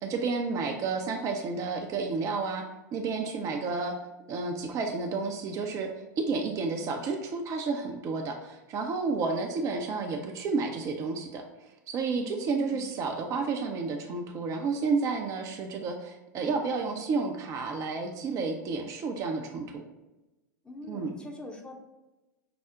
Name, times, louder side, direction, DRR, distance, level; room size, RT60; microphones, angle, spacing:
voice 1, 0.0-2.6 2.9-3.9 4.3-5.9 6.2-11.4 11.9-19.8 20.9-21.2, right 4 dB, 35° right, 3 dB, 0.5 m, -31 dB
voice 2, 12.1-12.8 20.6-21.8, left 1 dB, 10° left, 2 dB, 0.7 m, -43 dB
5.7 x 2.0 x 3.6 m, 1.0 s
figure-of-eight pair, 90°, 10 cm